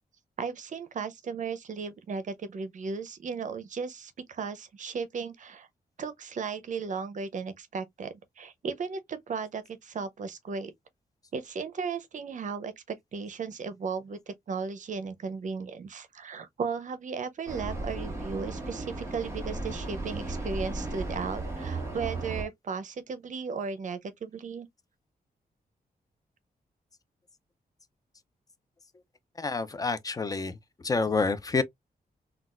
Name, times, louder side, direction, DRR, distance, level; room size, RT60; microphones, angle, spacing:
voice 1, 0.4-5.7 6.0-10.7 11.3-24.7, right 5 dB, 50° right, 0.6 m, -35 dB
Vehicle, 17.5-22.4, right 2 dB, 15° right, 1.4 m, -35 dB
voice 2, 29.4-30.6 30.8-31.6, left 4 dB, 25° left, 0.4 m, -28 dB
3.9 x 2.2 x 2.4 m
wide cardioid pair, 165°, 16 cm